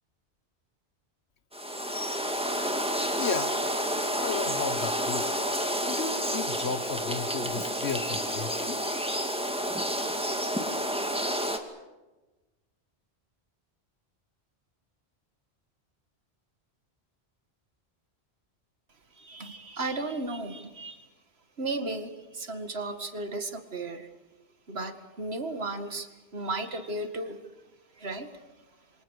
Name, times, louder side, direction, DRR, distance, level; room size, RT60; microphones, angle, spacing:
sound 1, 1.5-11.6, equal, 5° right, 2.3 m, -30 dB
voice 1, 3.2-3.6 4.1-5.3 5.9-8.8, left 5 dB, 80° left, 13 dB, 1.5 m, -34 dB
voice 2, 19.2-21.0 21.6-24.1 24.7-27.4 28.0-28.3, right 2 dB, 70° right, 8 dB, 2.3 m, -35 dB
28.5 x 25.0 x 6.6 m, 1.2 s
omnidirectional pair, 1.1 m